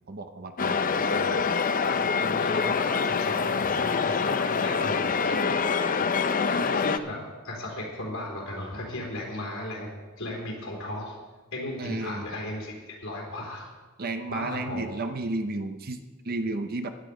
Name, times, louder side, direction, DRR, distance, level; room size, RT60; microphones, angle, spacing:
voice 1, 0.1-1.4 5.3-5.7 11.8-12.2 14.0-16.0 16.3-16.9, right 2 dB, 45° right, 8 dB, 0.8 m, -33 dB
sound 1, 0.6-7.0, left 5 dB, 40° left, 0.6 m, -25 dB
voice 2, 1.8-5.4 6.5-9.9 10.2-11.2 11.5-13.7 14.3-15.1, left 1 dB, 80° left, -3 dB, 3.8 m, -36 dB
16.0 x 10.5 x 5.0 m, 1.3 s
head